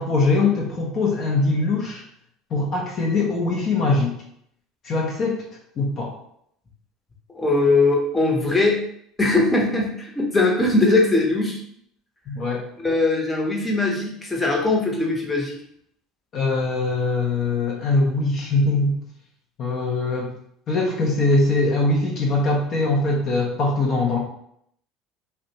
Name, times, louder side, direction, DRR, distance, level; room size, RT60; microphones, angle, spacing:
voice 1, 0.0-2.0 2.5-4.1 4.8-5.4 5.8-6.1 12.3-12.7 16.3-19.0 19.6-20.3 20.7-24.2, left 2 dB, 50° left, -1 dB, 0.5 m, -22 dB
voice 2, 7.4-8.8 9.2-11.6 12.8-15.5, left 2 dB, 20° left, -1 dB, 0.8 m, -20 dB
2.5 x 2.1 x 2.8 m, 0.69 s
hypercardioid pair, 75°, 0 cm